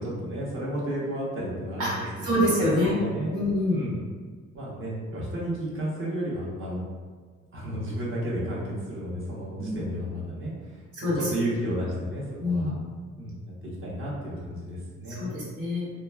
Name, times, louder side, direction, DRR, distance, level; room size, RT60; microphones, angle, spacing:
voice 1, 0.0-3.3 3.7-3.9 4.5-6.9 7.5-12.7 13.2-15.4, equal, 45° right, -6 dB, 1.0 m, -32 dB
voice 2, 1.8-3.0 3.3-3.8 9.6-9.8 10.9-11.3 12.4-12.7 15.1-15.9, left 1 dB, 85° right, -7 dB, 1.2 m, -26 dB
2.9 x 2.2 x 2.3 m, 1.5 s
cardioid pair, 90°, 30 cm